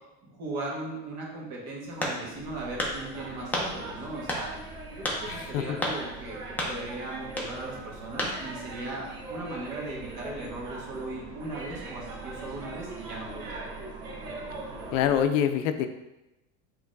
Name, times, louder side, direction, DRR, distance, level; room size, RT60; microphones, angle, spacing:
voice 1, 0.2-4.5 5.0-6.4 6.6-13.7, right 2 dB, 40° right, -3 dB, 1.4 m, -38 dB
sound 1, 2.0-2.4 2.8-3.0 3.5-3.7 4.3-4.5 5.1-5.2 5.8-6.0 6.6-6.8 7.3-7.5 8.2-8.4, left 1 dB, 5° left, 0.6 m, -29 dB
sound 2, 2.3-15.2, right 2 dB, 90° right, 1.0 m, -41 dB
voice 2, 5.3-5.8 14.9-15.9, left 9 dB, 70° left, 8 dB, 0.5 m, -25 dB
5.7 x 3.0 x 2.6 m, 0.95 s
supercardioid pair, 130°, 39 cm